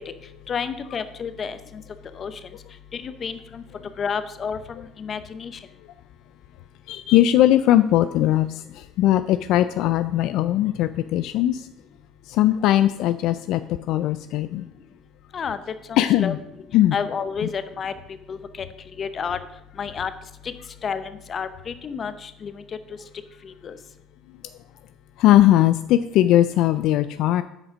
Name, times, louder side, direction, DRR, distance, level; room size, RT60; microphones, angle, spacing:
voice 1, 0.5-1.8 2.2-2.3 2.9-3.6 4.0-5.5 15.3-15.6 15.9-16.4 16.9-17.9 18.3-18.7 19.0-19.4 19.8-20.1 20.8-22.6 23.4-23.8, left 6 dB, 40° left, 12 dB, 0.8 m, -30 dB
voice 2, 6.9-11.7 12.3-13.6 13.9-14.7 16.0-16.4 16.7-16.9 25.2-27.4, left 13 dB, 70° left, 12 dB, 0.3 m, -19 dB
8.6 x 5.0 x 6.2 m, 0.85 s
supercardioid pair, 105°, 0 cm